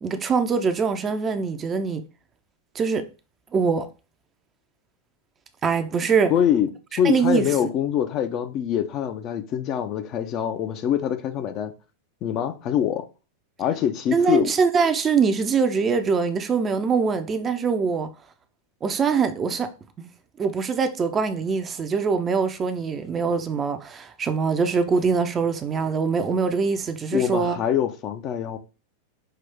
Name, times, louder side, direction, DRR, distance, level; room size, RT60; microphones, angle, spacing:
voice 1, 0.0-2.0 2.7-3.1 3.5-3.9 5.6-6.3 7.0-7.4 14.1-18.1 18.8-19.7 20.0-20.1 20.4-27.6, right 5 dB, 20° right, 0.6 m, -23 dB
voice 2, 6.3-6.7 7.0-11.7 12.2-13.1 13.6-14.5 27.1-28.6, left 9 dB, 35° left, 0.6 m, -24 dB
5.6 x 2.7 x 3.4 m
figure-of-eight pair, 90°, 0 cm